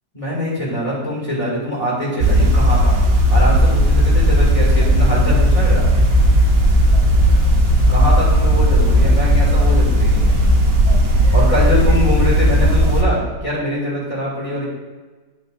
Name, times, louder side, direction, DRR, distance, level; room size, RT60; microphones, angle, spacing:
voice 1, 0.1-3.0 3.3-5.8 7.9-10.4 11.3-14.7, equal, 15° left, -6 dB, 2.4 m, -23 dB
sound 1, 2.2-13.0, equal, 55° right, 1.3 m, -14 dB
11.0 x 6.3 x 2.6 m, 1.3 s
omnidirectional pair, 2.1 m